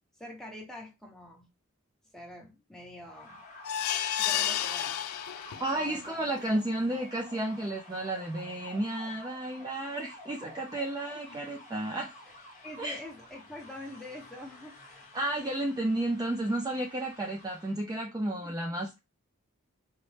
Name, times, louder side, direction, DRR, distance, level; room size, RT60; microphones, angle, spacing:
voice 1, 0.1-1.5 2.1-3.4 4.2-5.0 5.7-6.3 6.5-6.8 11.1-11.4 12.6-15.1 18.4-18.8, left 1 dB, ahead, 0.9 m, -46 dB
sound 1, 3.0-17.8, left 1 dB, 35° left, 1.0 m, -51 dB
sound 2, 3.6-5.9 6.4-6.5 6.8-6.9, left 10 dB, 80° left, 0.3 m, -31 dB
voice 2, 5.6-12.1 12.8-13.0 15.1-19.0, right 1 dB, 15° right, 0.4 m, -32 dB
4.0 x 2.1 x 3.2 m
head